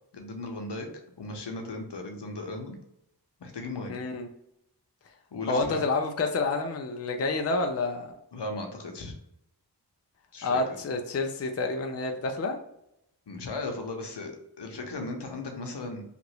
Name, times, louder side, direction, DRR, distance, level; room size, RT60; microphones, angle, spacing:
voice 1, 0.1-0.9 1.2-2.8 3.4-4.0 5.3-5.8 8.3-9.1 10.3-10.8 13.3-16.0, left 2 dB, 75° left, 3 dB, 0.8 m, -36 dB
voice 2, 3.9-4.3 5.5-8.1 10.4-12.6, left 3 dB, 40° left, 5 dB, 0.5 m, -28 dB
2.8 x 2.5 x 3.0 m, 0.79 s
wide cardioid pair, 40°, 42 cm